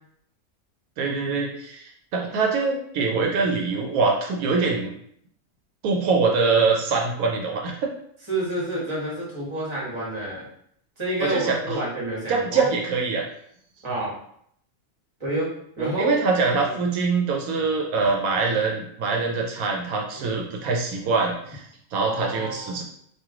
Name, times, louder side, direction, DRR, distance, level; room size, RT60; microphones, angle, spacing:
voice 1, 1.0-4.9 5.8-7.8 11.2-11.8 12.3-13.3 15.8-22.8, right 4 dB, 80° right, 1 dB, 1.0 m, -24 dB
voice 2, 8.3-10.5 11.0-12.6 13.8-14.1 15.2-15.5 15.8-16.1 16.7-16.8 20.2-20.3 22.0-22.8, right 1 dB, 20° right, -5 dB, 1.2 m, -29 dB
3.1 x 2.6 x 3.6 m, 0.68 s
omnidirectional pair, 1.5 m